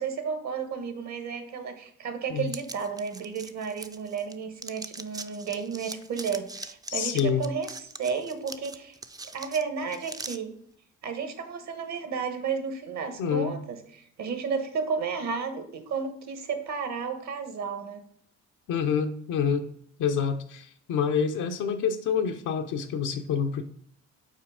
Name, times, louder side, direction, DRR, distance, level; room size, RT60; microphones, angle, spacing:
voice 1, 0.0-9.0 9.3-10.5 11.0-18.0, right 6 dB, 65° right, 8 dB, 1.2 m, -32 dB
sound 1, 2.5-4.3 4.6-10.4, right 3 dB, 15° right, 0.4 m, -41 dB
voice 2, 6.9-7.4 13.2-13.6 18.7-19.7 20.0-23.7, left 7 dB, 85° left, 4 dB, 0.7 m, -27 dB
5.7 x 4.1 x 4.9 m, 0.65 s
cardioid pair, 90°, 30 cm